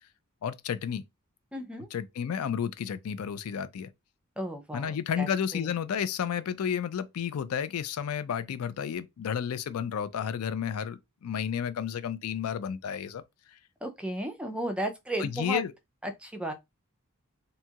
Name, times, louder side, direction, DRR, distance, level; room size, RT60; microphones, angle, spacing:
voice 1, 0.4-1.0 1.9-3.9 4.7-13.2 15.2-15.7, left 8 dB, 70° left, 0.4 m, -31 dB
voice 2, 1.5-1.9 4.4-5.7 13.8-15.6 16.0-16.5, right 1 dB, 5° right, 0.4 m, -34 dB
2.7 x 2.3 x 2.8 m
head